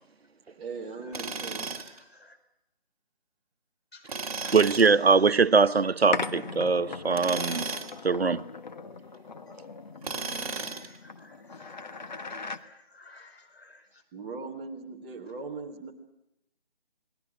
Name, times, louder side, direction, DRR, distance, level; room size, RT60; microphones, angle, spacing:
voice 1, 0.6-1.7 14.1-15.9, right 4 dB, 10° right, 1.2 m, -39 dB
Tools, 1.1-2.0 4.1-4.9 7.1-8.0 10.0-11.0, right 4 dB, 35° right, 2.4 m, -34 dB
voice 2, 4.5-7.7 8.0-8.4, right 4 dB, 90° right, 1.0 m, -22 dB
sound 1, 6.1-12.6, left 4 dB, 45° left, 1.3 m, -39 dB
voice 3, 10.5-13.9, left 2 dB, 90° left, 5.0 m, -53 dB
28.5 x 20.5 x 6.0 m
figure-of-eight pair, 160°, 30 cm